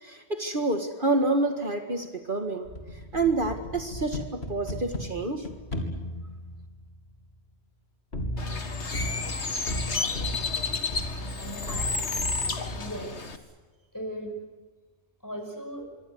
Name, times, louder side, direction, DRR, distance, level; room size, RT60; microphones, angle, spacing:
voice 1, 0.0-2.7 3.1-5.5, right 2 dB, 50° right, 6 dB, 2.1 m, -28 dB
sound 1, 2.6-7.3 8.1-12.9, left 1 dB, 70° left, 3.7 m, -36 dB
Bird, 8.4-13.4, left 4 dB, 85° left, 2.2 m, -31 dB
voice 2, 11.2-11.9 12.8-13.5 13.9-14.4 15.2-15.9, equal, 15° left, 5 dB, 6.0 m, -38 dB
26.5 x 24.0 x 8.0 m, 1.3 s
omnidirectional pair, 1.1 m